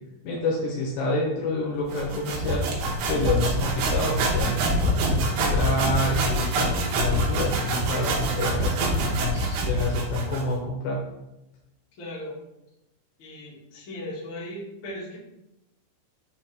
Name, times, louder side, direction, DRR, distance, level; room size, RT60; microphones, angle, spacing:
voice 1, 0.2-2.7 3.1-11.0, left 2 dB, 75° left, -2 dB, 2.7 m, -28 dB
sound 1, 1.9-10.5, right 1 dB, 75° right, 3.2 m, -25 dB
voice 2, 12.0-12.4 13.2-15.2, left 1 dB, 50° left, -7 dB, 1.6 m, -37 dB
7.2 x 3.6 x 4.4 m, 0.90 s
omnidirectional pair, 5.8 m